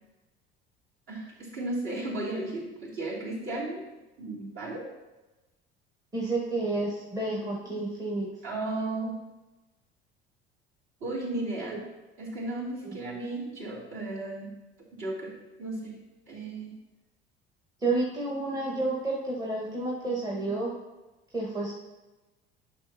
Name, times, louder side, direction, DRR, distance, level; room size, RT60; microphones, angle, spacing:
voice 1, 1.1-3.8 4.2-4.9 8.4-9.2 11.0-11.8 12.2-14.5 15.0-16.0 16.3-16.7, right 2 dB, 40° right, -5 dB, 2.9 m, -34 dB
voice 2, 6.1-8.3 11.7-11.8 12.8-13.0 17.8-20.7 21.3-21.7, right 2 dB, 10° right, -3 dB, 1.4 m, -30 dB
10.5 x 6.1 x 2.8 m, 1.1 s
figure-of-eight pair, 60°, 31 cm